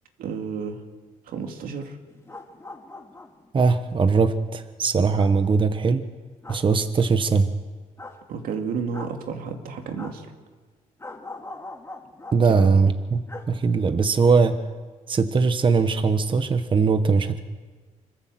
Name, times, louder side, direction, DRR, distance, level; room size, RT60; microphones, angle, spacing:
voice 1, 0.2-0.8 1.3-2.0 8.3-10.3, right 5 dB, 85° right, 4 dB, 2.5 m, -31 dB
sound 1, 2.1-3.5 5.1-5.3 6.4-6.6 8.0-8.2 8.9-9.1 9.9-10.2 11.0-12.7 13.3-13.5 13.8-13.9, left 2 dB, 20° left, 2.4 m, -41 dB
voice 2, 3.5-6.0 6.5-7.5 12.3-14.6 15.1-17.4, right 4 dB, 35° right, 9 dB, 1.2 m, -20 dB
25.5 x 14.5 x 7.8 m, 1.4 s
cardioid pair, 105°, 15 cm